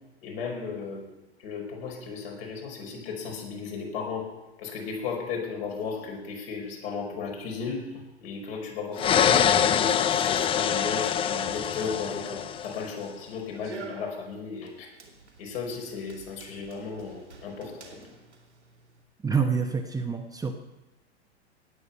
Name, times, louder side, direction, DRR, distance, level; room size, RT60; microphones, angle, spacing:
voice 1, 0.2-1.1 1.4-4.3 4.6-14.9 15.4-18.0, left 5 dB, 60° left, 1 dB, 5.0 m, -35 dB
sound 1, 9.0-12.9, left 8 dB, 15° left, 0.4 m, -24 dB
Run, 11.4-19.0, right 4 dB, 90° right, 2.6 m, -49 dB
voice 2, 19.2-20.5, right 5 dB, 10° right, 4 dB, 1.0 m, -27 dB
18.5 x 8.4 x 5.8 m, 1.0 s
figure-of-eight pair, 100°, 34 cm